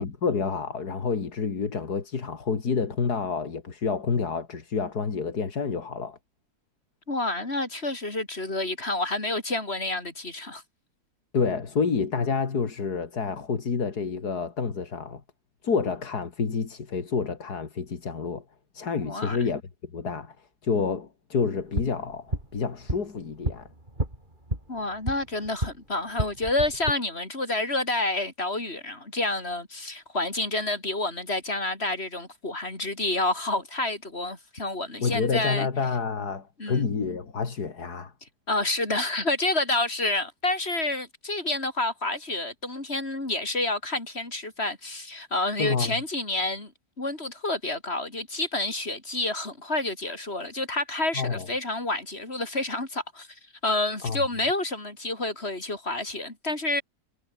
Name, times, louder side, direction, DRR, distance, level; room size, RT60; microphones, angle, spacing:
voice 1, 0.0-6.2 11.3-15.2 15.6-18.4 18.7-23.7 35.0-38.1 45.6-46.0 51.1-51.5 54.0-54.2, left 5 dB, 85° left, 2.9 m, -28 dB
voice 2, 7.1-10.6 19.0-19.5 24.7-35.7 36.6-36.9 38.5-46.7 47.0-56.8, left 2 dB, 40° left, 4.4 m, -29 dB
sound 1, 21.5-25.8 26.1-26.9, right 1 dB, 30° right, 6.5 m, -32 dB
omnidirectional pair, 1.6 m